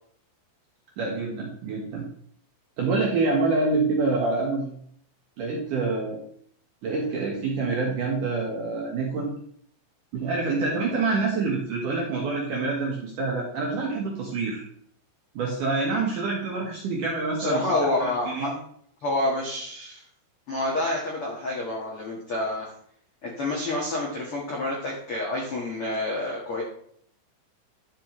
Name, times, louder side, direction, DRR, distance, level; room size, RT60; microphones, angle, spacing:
voice 1, 1.0-2.1 2.8-4.8 5.4-6.2 6.8-9.3 10.1-14.6 15.3-17.7 18.0-18.5, right 3 dB, 65° right, -2 dB, 2.1 m, -26 dB
voice 2, 17.4-18.5 19.0-20.0 20.5-22.7 23.2-26.6, left 2 dB, 70° left, -3 dB, 1.3 m, -28 dB
11.0 x 7.3 x 3.2 m, 0.63 s
omnidirectional pair, 5.4 m